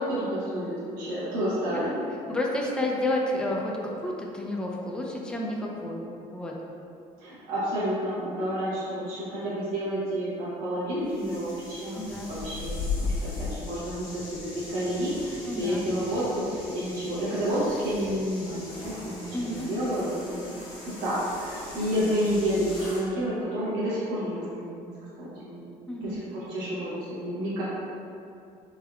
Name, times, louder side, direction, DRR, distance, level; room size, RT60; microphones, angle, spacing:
voice 1, 0.0-1.9 7.2-20.5 21.0-24.9 25.2-25.6 26.0-27.6, equal, 90° right, -9 dB, 0.8 m, -30 dB
voice 2, 1.6-1.9 2.3-6.5 12.0-12.3 15.5-15.8 19.3-19.7 25.9-26.2, left 1 dB, 5° left, -1 dB, 0.3 m, -31 dB
sound 1, 11.1-23.1, left 3 dB, 65° left, 1.3 m, -38 dB
3.4 x 2.2 x 2.2 m, 2.6 s
supercardioid pair, 90°, 15 cm